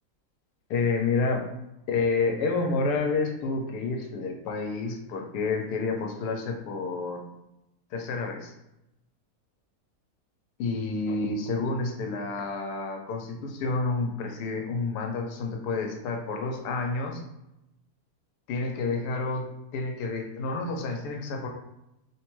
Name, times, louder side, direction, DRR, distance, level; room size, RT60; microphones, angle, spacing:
voice 1, 0.7-1.5 1.9-7.2 7.9-8.5 10.6-17.2 18.5-21.5, left 3 dB, 80° left, 2 dB, 1.1 m, -29 dB
3.1 x 2.1 x 3.0 m, 0.88 s
omnidirectional pair, 1.7 m